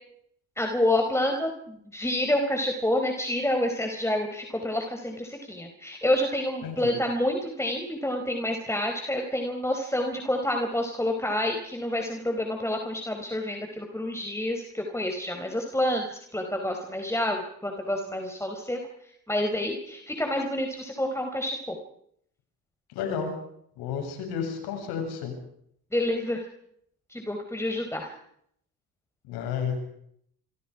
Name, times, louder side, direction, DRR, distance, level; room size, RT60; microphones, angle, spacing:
voice 1, 0.6-18.8 19.3-21.7 25.9-26.4 27.1-28.1, left 1 dB, 5° left, 3 dB, 4.5 m, -28 dB
voice 2, 6.6-7.0 22.9-23.3 23.8-25.3 29.3-29.8, left 7 dB, 90° left, 4 dB, 7.6 m, -31 dB
26.5 x 26.0 x 5.0 m, 0.69 s
supercardioid pair, 70°, 37 cm